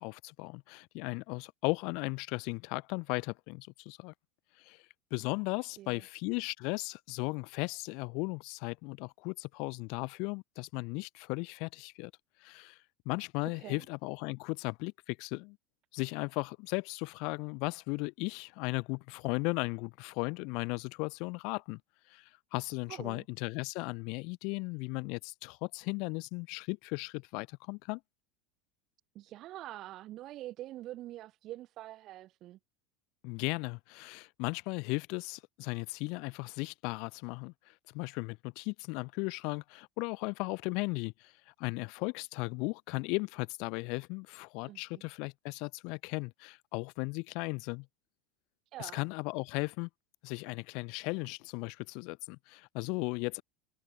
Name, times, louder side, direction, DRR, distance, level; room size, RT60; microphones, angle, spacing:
voice 1, 0.0-4.1 4.6-4.8 5.1-12.1 12.4-12.8 13.1-15.6 15.9-21.8 22.1-28.0 33.2-47.9 48.8-49.9 50.2-53.4, left 30 dB, 50° left, 0.3 m, -36 dB
voice 2, 5.6-6.0 13.4-13.9 22.9-23.2 29.1-32.6 44.7-45.0 48.7-49.0, right 15 dB, 40° right, 0.3 m, -45 dB
figure-of-eight pair, 80°, 0 cm